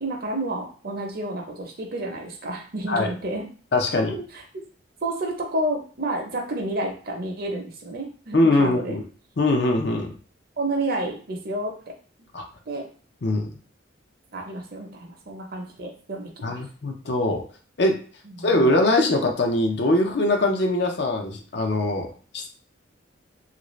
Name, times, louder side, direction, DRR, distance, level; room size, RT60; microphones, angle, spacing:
voice 1, 0.0-3.4 4.1-4.4 5.0-8.9 10.6-11.9 12.7-12.9 14.3-16.6 18.2-18.5, right 1 dB, 50° right, 2 dB, 0.7 m, -30 dB
voice 2, 3.7-4.2 8.3-9.0 9.4-10.1 12.3-12.4 13.2-13.5 16.4-17.4 17.8-18.0 18.4-22.5, left 2 dB, 60° left, 3 dB, 0.5 m, -22 dB
3.2 x 2.5 x 3.1 m, 0.41 s
head